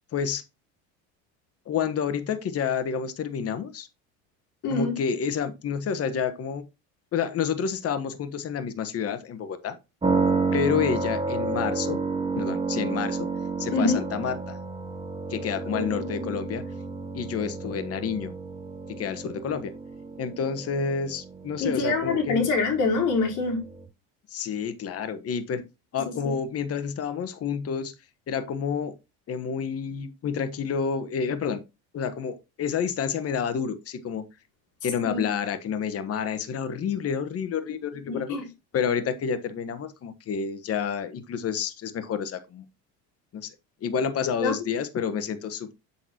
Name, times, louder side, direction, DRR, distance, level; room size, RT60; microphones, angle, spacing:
voice 1, 0.1-0.4 1.7-3.9 4.7-6.7 7.1-9.8 10.5-12.0 12.3-13.3 13.6-14.6 15.3-16.6 17.1-18.3 19.0-19.7 20.2-22.4 24.3-25.6 25.9-27.9 28.3-28.9 29.3-31.6 31.9-34.2 34.8-38.4 38.7-42.6 43.3-43.5 43.8-45.7, left 7 dB, 45° left, 1.3 m, -29 dB
voice 2, 4.6-4.9 13.7-14.0 15.7-16.3 21.6-23.6 26.1-26.2 35.0-35.2 38.1-38.4 44.4-44.5, left 3 dB, 60° left, 4.2 m, -25 dB
sound 1, 10.0-23.9, right 4 dB, 15° right, 2.0 m, -31 dB
7.9 x 7.0 x 2.9 m
supercardioid pair, 95°, 34 cm